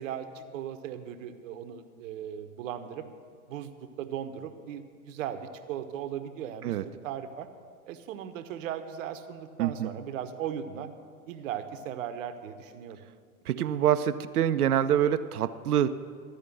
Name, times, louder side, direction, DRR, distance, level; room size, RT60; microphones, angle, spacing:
voice 1, 0.0-3.1 3.5-6.8 7.0-7.5 7.9-10.9 11.3-13.0, right 9 dB, 60° right, 9 dB, 0.9 m, -37 dB
voice 2, 9.6-9.9 13.5-15.9, right 10 dB, 80° right, 12 dB, 0.6 m, -25 dB
13.0 x 5.0 x 7.8 m, 2.1 s
hypercardioid pair, 95°, 45 cm